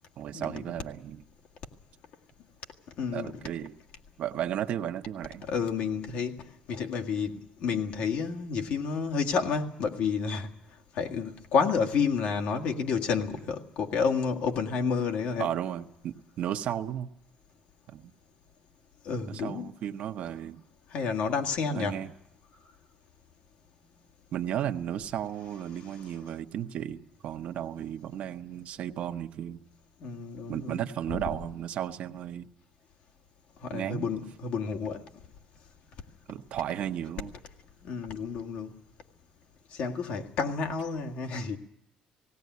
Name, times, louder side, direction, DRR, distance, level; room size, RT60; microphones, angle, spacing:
voice 1, 0.2-1.2 3.1-3.7 4.2-5.5 15.4-17.1 17.9-18.1 19.2-20.6 21.7-22.1 24.3-29.6 30.5-32.5 33.7-34.1 36.3-37.3, right 10 dB, 60° right, 0.9 m, -34 dB
voice 2, 3.0-3.3 5.5-6.4 6.7-10.5 10.9-15.5 19.0-19.7 20.9-22.0 30.0-30.8 33.6-35.0 37.8-38.7 39.7-41.6, left 5 dB, 70° left, 1.8 m, -30 dB
17.5 x 17.5 x 9.4 m
cardioid pair, 140°, 3 cm